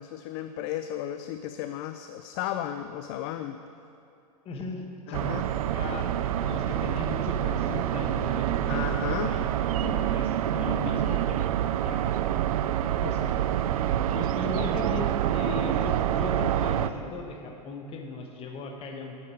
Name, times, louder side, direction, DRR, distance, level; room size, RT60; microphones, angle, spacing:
voice 1, 0.0-3.6 5.1-5.5 8.7-9.3, left 11 dB, 45° left, 9 dB, 0.4 m, -34 dB
voice 2, 4.4-5.4 5.7-12.2 13.0-13.6 14.1-19.1, left 3 dB, 30° left, 3 dB, 1.2 m, -38 dB
sound 1, 5.1-16.9, right 11 dB, 70° right, 0.4 m, -27 dB
8.5 x 8.0 x 4.9 m, 2.6 s
hypercardioid pair, 105°, 20 cm